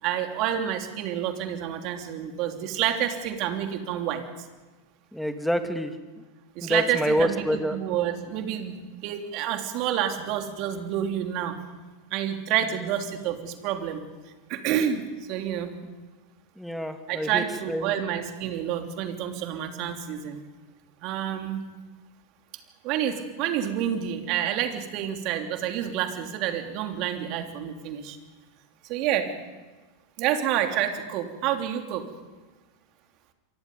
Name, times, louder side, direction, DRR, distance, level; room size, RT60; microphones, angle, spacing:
voice 1, 0.0-4.2 6.5-11.6 12.1-14.0 14.5-15.7 17.1-20.4 21.0-21.6 22.8-28.2 28.9-29.3 30.2-32.0, right 10 dB, 50° right, 5 dB, 3.1 m, -28 dB
voice 2, 5.1-5.9 6.6-7.8 16.6-17.9, equal, ahead, 7 dB, 2.4 m, -27 dB
28.5 x 23.5 x 5.5 m, 1.3 s
hypercardioid pair, 90°, 0 cm